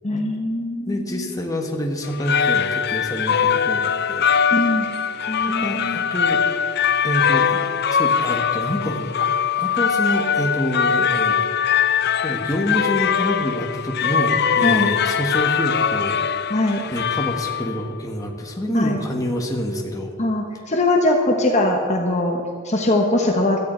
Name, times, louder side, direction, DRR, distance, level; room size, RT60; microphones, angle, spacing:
voice 1, 0.0-1.3 4.5-4.8 5.3-6.0 14.6-14.9 16.5-16.8 18.7-19.0 20.2-23.6, left 1 dB, 30° left, 1 dB, 1.3 m, -21 dB
voice 2, 0.9-4.3 5.5-6.4 7.0-7.6 7.9-9.3 9.6-11.4 12.2-16.5 16.9-20.1, equal, 15° left, 1 dB, 1.5 m, -27 dB
sound 1, 2.0-17.9, left 7 dB, 50° left, 0.5 m, -21 dB
17.0 x 13.5 x 4.6 m, 2.3 s
head